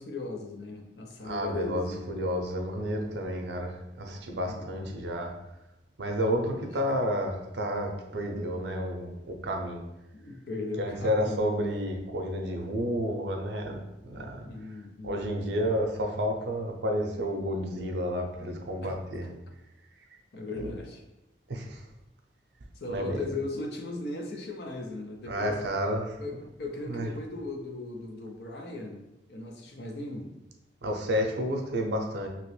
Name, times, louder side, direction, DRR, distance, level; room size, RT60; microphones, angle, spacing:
voice 1, 0.0-2.0 4.5-5.0 6.5-7.0 10.1-11.6 14.1-15.2 18.8-18.9 20.3-21.0 22.8-25.6 26.2-30.3, left 2 dB, 70° left, 3 dB, 0.5 m, -38 dB
voice 2, 1.2-5.3 6.0-9.8 10.8-14.5 15.0-19.3 20.6-20.7 21.5-21.8 22.9-23.3 25.3-26.2 26.9-27.1 30.8-32.3, equal, 80° right, 3 dB, 0.5 m, -31 dB
2.9 x 2.8 x 3.1 m, 0.93 s
head